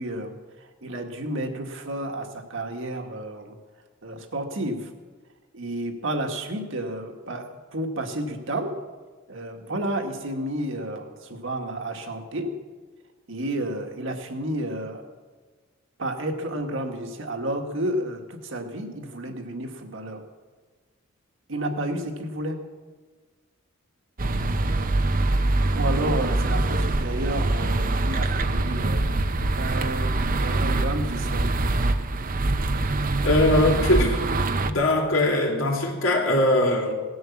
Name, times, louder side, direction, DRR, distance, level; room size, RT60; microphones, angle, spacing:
voice 1, 0.0-3.6 4.0-4.9 5.5-8.8 9.3-12.5 13.3-15.0 16.0-20.2 21.5-22.6 25.7-29.2 29.6-31.5, right 1 dB, 65° right, 5 dB, 1.9 m, -31 dB
sound 1, 24.2-34.7, right 2 dB, 45° right, 0.8 m, -24 dB
voice 2, 33.2-34.2 34.6-36.9, left 1 dB, 75° left, 1 dB, 3.1 m, -21 dB
17.5 x 11.0 x 7.3 m, 1.4 s
head